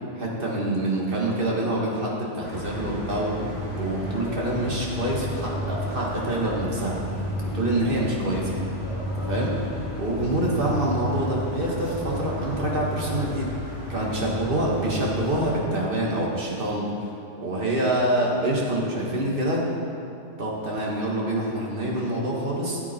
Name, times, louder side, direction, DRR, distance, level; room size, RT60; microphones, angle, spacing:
voice 1, 0.2-7.0 7.4-8.5 9.1-9.5 10.0-13.5 13.9-17.1 17.4-19.7 20.4-22.8, right 1 dB, 40° right, -4 dB, 1.9 m, -26 dB
sound 1, 2.4-15.6, left 1 dB, 45° left, 2.3 m, -32 dB
13.5 x 8.3 x 4.5 m, 2.6 s
omnidirectional pair, 1.4 m